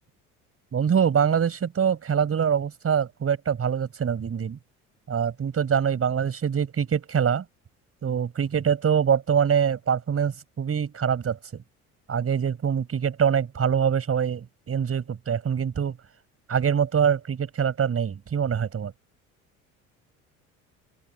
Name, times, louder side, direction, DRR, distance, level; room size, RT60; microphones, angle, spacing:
voice 1, 0.7-4.6 5.1-7.4 8.0-11.6 12.1-16.0 16.5-18.9, right 7 dB, 30° right, 5.4 m, -24 dB
open air
figure-of-eight pair, 60°, 44 cm